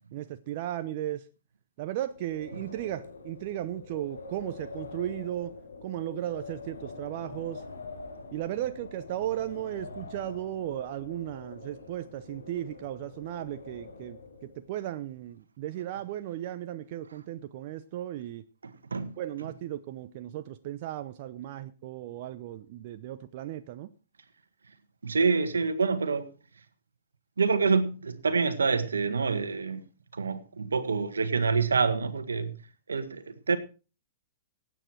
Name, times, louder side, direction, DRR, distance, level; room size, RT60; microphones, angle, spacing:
voice 1, 0.1-1.3 1.8-5.5 5.8-7.6 8.3-18.4 19.2-23.9, right 12 dB, 50° right, 0.8 m, -36 dB
Wind, 2.1-14.7, left 3 dB, 90° left, 3.5 m, -45 dB
voice 2, 18.6-19.1 25.0-26.3 27.4-29.8 30.1-32.5 32.9-33.6, right 4 dB, 85° right, 1.6 m, -27 dB
16.0 x 9.3 x 4.6 m
hypercardioid pair, 115°, 0 cm